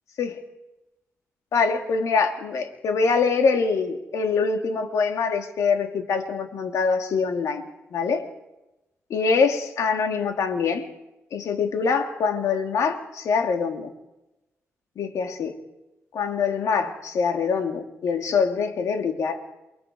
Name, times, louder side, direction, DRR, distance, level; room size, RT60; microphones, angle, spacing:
voice 1, 1.5-7.6 7.9-8.3 9.1-10.8 11.3-13.9 15.0-15.5 16.1-19.4, left 5 dB, 80° left, 5 dB, 2.1 m, -24 dB
28.5 x 20.0 x 4.7 m, 0.98 s
wide cardioid pair, 175°, 5 cm